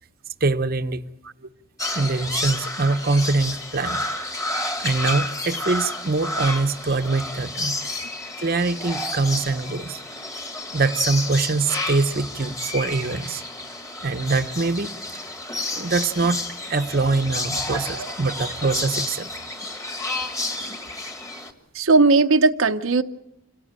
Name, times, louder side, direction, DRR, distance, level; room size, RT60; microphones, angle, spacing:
voice 1, 0.4-1.0 1.9-4.0 4.8-7.7 8.4-10.0 10.7-13.4 14.0-14.9 15.7-16.4 16.7-19.3, right 3 dB, 45° right, 0.8 m, -23 dB
sound 1, 1.8-21.5, left 2 dB, 15° left, 1.6 m, -30 dB
voice 2, 17.7-18.1 21.7-23.0, right 3 dB, 80° right, 0.8 m, -18 dB
26.5 x 17.5 x 8.8 m
head